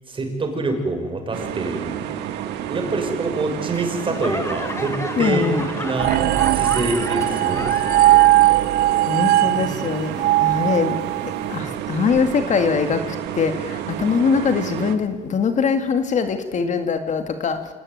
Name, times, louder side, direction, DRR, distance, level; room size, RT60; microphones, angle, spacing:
voice 1, 0.1-2.1 2.7-5.5 5.8-6.1 6.5-8.2, right 2 dB, 30° right, 4 dB, 5.8 m, -26 dB
sound 1, 1.3-15.0, right 10 dB, 85° right, 2.0 m, -30 dB
Laughter / Clapping / Crowd, 3.7-8.5 8.8-9.4 9.9-10.0, left 3 dB, 15° left, 1.7 m, -32 dB
voice 2, 5.2-5.7 9.1-11.0 11.2-17.6, left 5 dB, 45° left, 7 dB, 2.1 m, -22 dB
sound 2, 6.0-11.4, right 16 dB, 70° right, 0.9 m, -18 dB
27.0 x 18.0 x 9.4 m, 1.4 s
cardioid pair, 110°, 17 cm